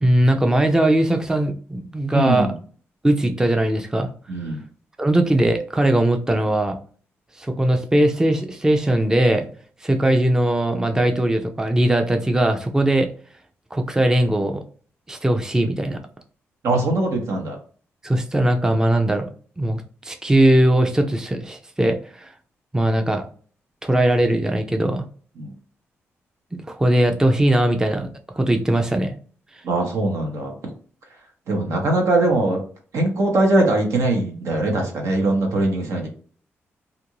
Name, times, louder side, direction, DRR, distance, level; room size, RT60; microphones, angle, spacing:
voice 1, 0.0-2.5 3.0-4.1 5.0-6.8 7.4-9.5 9.8-13.1 13.7-14.6 15.1-16.0 18.0-19.3 19.6-22.3 22.7-23.2 23.8-25.0 26.7-28.1 28.3-29.1, right 1 dB, 10° right, 5 dB, 0.4 m, -19 dB
voice 2, 2.1-2.5 4.3-4.6 16.6-17.6 25.4-25.5 29.6-30.6 31.5-32.6 32.9-36.1, right 2 dB, 75° right, 2 dB, 1.0 m, -21 dB
2.5 x 2.5 x 3.0 m, 0.43 s
cardioid pair, 70°, 5 cm